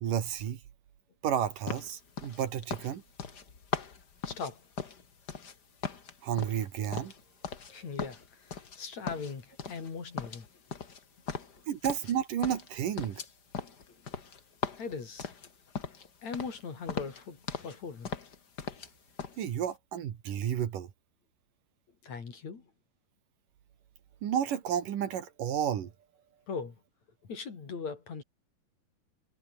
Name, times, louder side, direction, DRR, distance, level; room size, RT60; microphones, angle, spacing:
voice 1, 0.0-0.6 1.2-3.0 6.2-7.1 11.7-13.2 19.4-20.9 24.2-25.9, right 9 dB, 65° right, 3.4 m, -31 dB
sound 1, 1.7-5.6 5.8-7.7 8.0-8.8 9.1-9.9 10.2-12.2 12.4-16.1 16.3-16.6 16.9-17.8 18.0-18.9 19.2-19.4, left 6 dB, 35° left, 2.0 m, -39 dB
voice 2, 4.2-4.7 7.7-10.4 13.9-14.0 14.7-15.5 16.2-18.1 22.0-22.7 26.5-26.7 27.3-28.2, left 5 dB, 50° left, 4.8 m, -40 dB
omnidirectional pair, 4.1 m